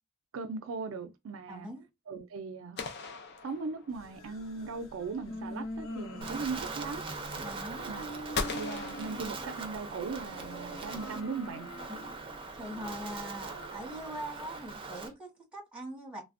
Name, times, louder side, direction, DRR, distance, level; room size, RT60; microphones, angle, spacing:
voice 1, 0.3-1.7 2.1-2.8 3.4-7.0 7.8-11.7, right 4 dB, 75° right, 0.4 m, -39 dB
voice 2, 1.5-1.9 7.4-7.9 11.9-12.2 12.5-16.2, right 1 dB, 5° right, 1.2 m, -42 dB
sound 1, 2.8-4.2 8.3-9.9, left 4 dB, 50° left, 0.5 m, -38 dB
sound 2, 3.9-15.1, equal, 75° left, 0.9 m, -45 dB
Wind, 6.2-15.1, right 4 dB, 25° right, 0.5 m, -41 dB
3.3 x 2.1 x 2.4 m
head